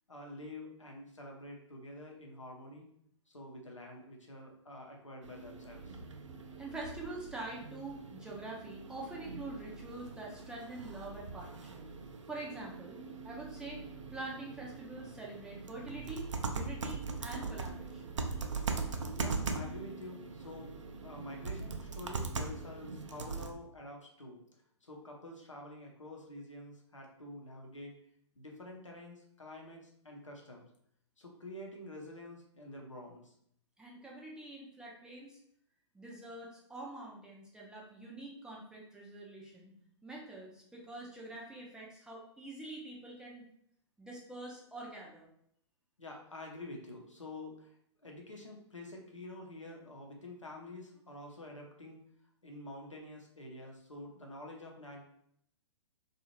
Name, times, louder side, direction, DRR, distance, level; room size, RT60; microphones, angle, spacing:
voice 1, 0.1-2.9 3.3-6.0 19.2-27.9 28.4-30.6 31.2-33.3 46.0-47.7 48.0-52.0 52.4-55.0, left 1 dB, 85° left, 0 dB, 0.7 m, -48 dB
sound 1, 5.2-23.5, right 4 dB, 75° right, 0.4 m, -41 dB
voice 2, 6.6-11.8 12.3-13.8 14.1-18.2 33.8-35.4 35.9-39.7 40.0-43.5 44.0-45.3, right 2 dB, 5° right, -3 dB, 0.4 m, -45 dB
2.7 x 2.4 x 3.0 m, 0.68 s
figure-of-eight pair, 115°, 16 cm